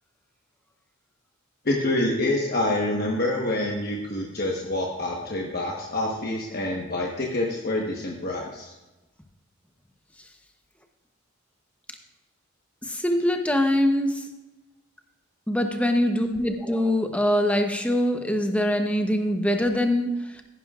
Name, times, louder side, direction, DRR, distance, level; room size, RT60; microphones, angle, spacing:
voice 1, 1.6-8.7, left 1 dB, 45° left, -1 dB, 1.2 m, -27 dB
voice 2, 12.8-14.3 15.5-20.4, left 1 dB, 5° left, 5 dB, 0.8 m, -23 dB
14.5 x 11.0 x 2.4 m, 1.1 s
head